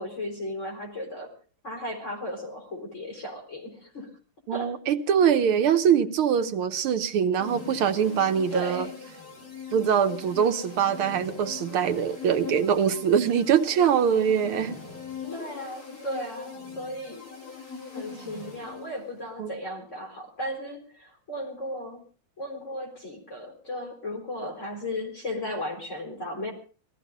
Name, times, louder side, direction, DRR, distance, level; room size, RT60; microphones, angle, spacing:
voice 1, 0.0-1.3 1.6-4.1 4.5-4.7 8.5-9.0 15.3-17.3 17.9-22.0 22.4-26.5, left 1 dB, 30° left, 2 dB, 4.9 m, -35 dB
voice 2, 4.5-8.9 9.7-14.8 19.4-19.5, right 8 dB, 75° right, 9 dB, 1.9 m, -23 dB
sound 1, 7.4-19.2, left 4 dB, 70° left, 6.5 m, -41 dB
19.0 x 14.0 x 5.2 m, 0.38 s
omnidirectional pair, 2.4 m